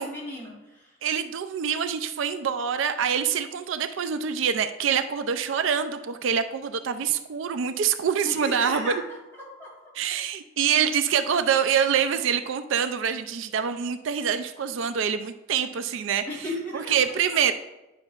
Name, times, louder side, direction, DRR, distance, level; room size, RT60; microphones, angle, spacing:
voice 1, 0.0-1.0 8.2-9.8 16.3-16.9, equal, 10° left, -5 dB, 2.5 m, -36 dB
voice 2, 1.0-8.9 10.0-16.2 16.7-17.5, right 7 dB, 75° right, 10 dB, 0.4 m, -25 dB
9.5 x 5.7 x 2.4 m, 1.0 s
head